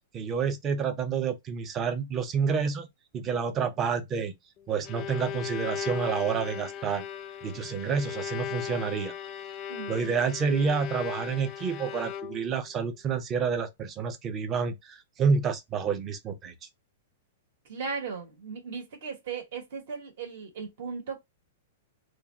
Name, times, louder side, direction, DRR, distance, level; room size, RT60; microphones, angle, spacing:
voice 1, 0.1-2.9 3.1-4.3 4.7-7.0 7.4-9.1 9.9-16.5, right 6 dB, 25° right, 0.5 m, -29 dB
Bowed string instrument, 4.6-12.6, left 9 dB, 35° left, 0.3 m, -37 dB
voice 2, 9.7-10.2 17.7-21.2, right 5 dB, 65° right, 1.1 m, -37 dB
2.5 x 2.1 x 3.1 m
hypercardioid pair, 145°, 0 cm